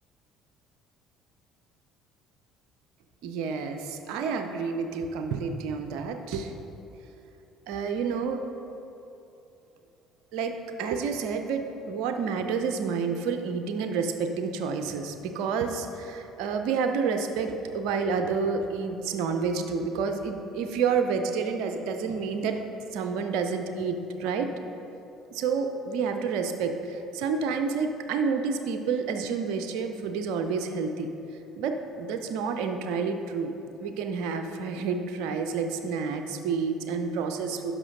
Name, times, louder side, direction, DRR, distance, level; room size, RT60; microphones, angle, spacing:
voice 1, 3.2-6.5 7.7-8.4 10.3-22.6 22.9-24.5 25.3-31.1 31.6-33.5 33.8-37.7, right 5 dB, 60° right, 6 dB, 0.5 m, -29 dB
10.5 x 6.0 x 3.9 m, 2.8 s
figure-of-eight pair, 55°, 0 cm